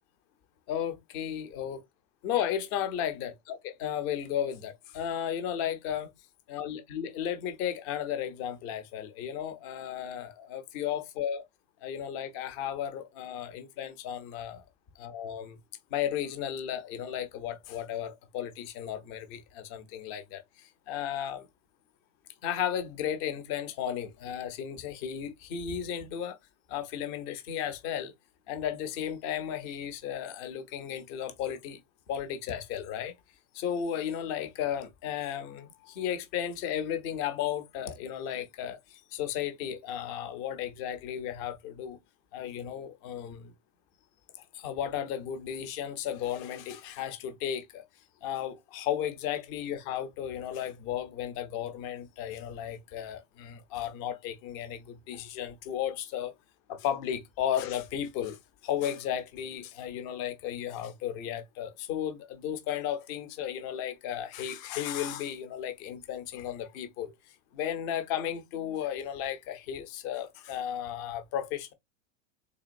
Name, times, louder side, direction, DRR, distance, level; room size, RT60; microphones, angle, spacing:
voice 1, 0.7-1.8 2.2-6.1 6.5-11.4 11.8-14.6 15.0-15.6 15.9-21.5 22.4-26.4 26.7-28.1 28.5-31.8 32.1-33.1 33.5-42.0 42.3-43.5 44.5-47.8 48.2-56.3 56.7-58.4 58.6-67.1 67.5-71.7, left 10 dB, 25° left, 0.5 m, -34 dB
3.7 x 3.5 x 2.5 m
supercardioid pair, 180°, 38 cm